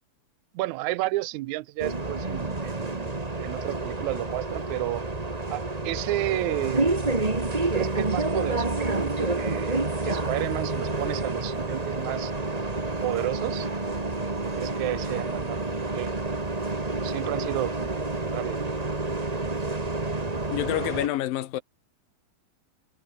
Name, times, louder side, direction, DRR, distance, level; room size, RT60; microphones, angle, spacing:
voice 1, 0.5-5.0 5.5-7.0 7.6-9.8 10.0-12.3 13.0-13.7 14.5-15.7 15.9-16.1 17.0-18.7, right 18 dB, 90° right, 1.7 m, -32 dB
Bus, 1.8-21.1, right 2 dB, 20° right, 1.1 m, -29 dB
voice 2, 20.5-21.6, left 14 dB, 75° left, 2.9 m, -28 dB
omnidirectional pair, 4.1 m